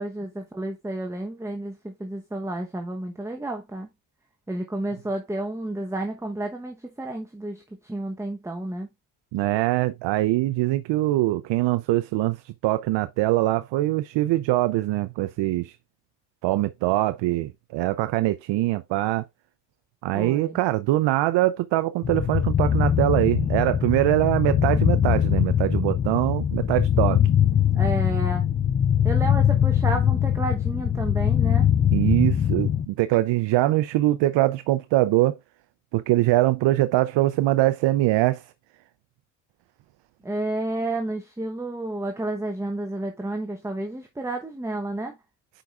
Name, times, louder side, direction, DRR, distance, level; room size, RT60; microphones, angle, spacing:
voice 1, 0.0-3.9 4.5-8.9 20.1-20.6 27.7-28.4 29.0-31.7 40.2-45.1, right 2 dB, 5° right, 0.9 m, -31 dB
voice 2, 9.3-15.8 16.4-19.2 20.0-27.2 31.9-35.4 35.9-38.4, right 16 dB, 65° right, 0.6 m, -23 dB
sound 1, 22.0-32.8, left 9 dB, 25° left, 0.3 m, -22 dB
9.1 x 4.9 x 2.4 m
cardioid pair, 95°, 46 cm